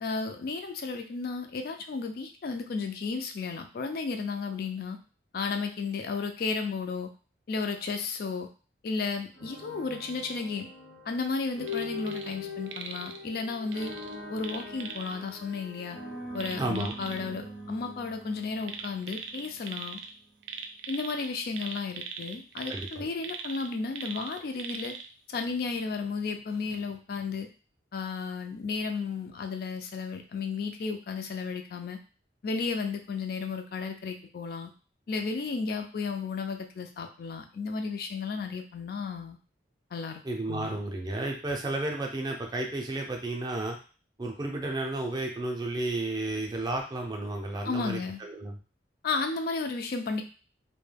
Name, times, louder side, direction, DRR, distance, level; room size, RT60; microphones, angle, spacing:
voice 1, 0.0-5.0 5.3-7.1 7.5-8.5 8.8-10.7 11.1-13.9 14.3-16.0 16.3-20.0 20.9-24.9 25.3-27.5 27.9-32.0 32.4-34.7 35.1-39.4 39.9-40.2 40.5-40.8 47.7-48.2 49.0-50.2, left 4 dB, 55° left, 5 dB, 0.3 m, -33 dB
sound 1, 9.4-19.4, left 2 dB, 75° left, 1.0 m, -42 dB
sound 2, 11.6-12.4 12.7-13.2 13.7-15.2 16.4-17.2 18.6-20.1 20.4-25.1 25.5-25.6, right 6 dB, 80° right, 0.3 m, -40 dB
voice 2, 16.6-16.9 22.7-23.1 40.2-43.8 44.2-48.6, right 2 dB, 25° right, 1 dB, 0.4 m, -32 dB
2.2 x 2.1 x 3.2 m, 0.37 s
head